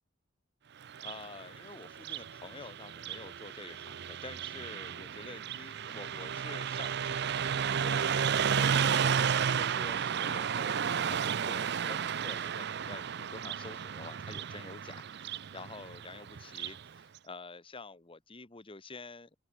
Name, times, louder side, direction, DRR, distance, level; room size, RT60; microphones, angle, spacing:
Car passing by, 0.8-16.8, right 7 dB, 60° right, 0.5 m, -33 dB
voice 1, 1.0-19.3, left 3 dB, 30° left, 1.2 m, -48 dB
open air
head